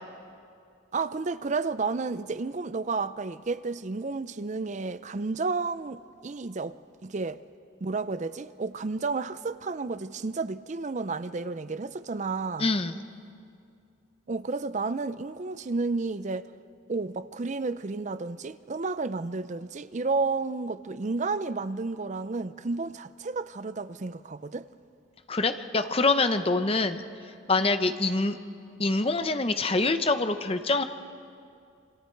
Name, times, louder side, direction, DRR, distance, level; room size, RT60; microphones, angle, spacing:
voice 1, 0.9-6.8 7.0-7.4 7.8-12.7 14.3-16.5 16.9-24.7, right 3 dB, 35° right, 0.5 m, -31 dB
voice 2, 12.6-13.0 25.3-27.0 27.5-28.4 28.8-30.8, left 3 dB, 30° left, 0.8 m, -25 dB
27.0 x 24.0 x 4.6 m
head